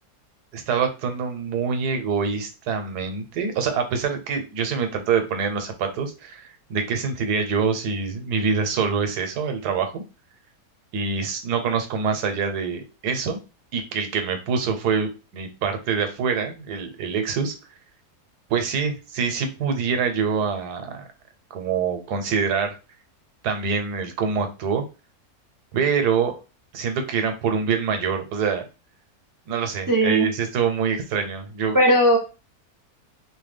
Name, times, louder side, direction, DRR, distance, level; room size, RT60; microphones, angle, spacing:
voice 1, 0.5-10.0 10.9-13.4 13.7-17.5 18.5-21.0 21.5-22.8 23.4-24.8 25.7-26.3 26.7-28.6 29.5-31.8, right 6 dB, 85° right, 6 dB, 1.3 m, -25 dB
voice 2, 29.9-30.3 31.7-32.2, equal, 25° right, -1 dB, 0.4 m, -17 dB
3.0 x 2.2 x 3.3 m, 0.29 s
omnidirectional pair, 1.7 m